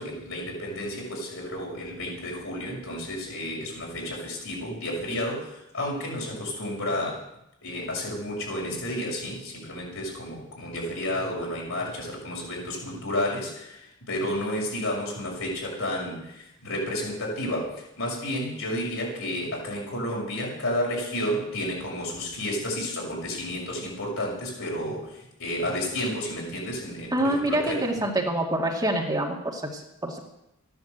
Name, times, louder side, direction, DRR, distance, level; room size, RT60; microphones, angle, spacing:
voice 1, 0.0-7.2 7.6-27.8, left 1 dB, 70° left, -2 dB, 6.5 m, -31 dB
voice 2, 27.1-30.2, right 1 dB, 20° right, 1 dB, 2.1 m, -26 dB
14.5 x 10.5 x 8.0 m, 0.85 s
head